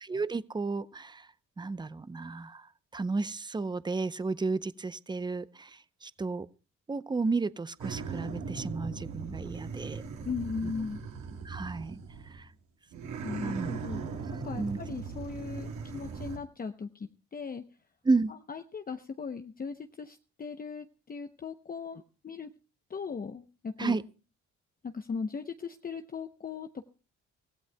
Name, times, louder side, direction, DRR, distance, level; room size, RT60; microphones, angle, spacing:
voice 1, 0.0-1.3 1.6-2.7 2.9-6.5 6.9-10.0 10.6-10.7 11.4-12.0 12.3-12.5 13.4-13.7 14.3-14.8 18.0-18.3 23.8-24.0, right 3 dB, 15° right, 16 dB, 0.6 m, -32 dB
sound 1, 7.8-12.5 12.9-16.4, right 5 dB, 70° right, 3.2 m, -39 dB
voice 2, 10.2-11.0 13.2-14.0 14.4-17.6 18.5-22.5 22.9-24.0 24.8-26.9, left 5 dB, 30° left, 8 dB, 0.7 m, -38 dB
24.5 x 15.5 x 2.2 m, 0.34 s
cardioid pair, 90°, 30 cm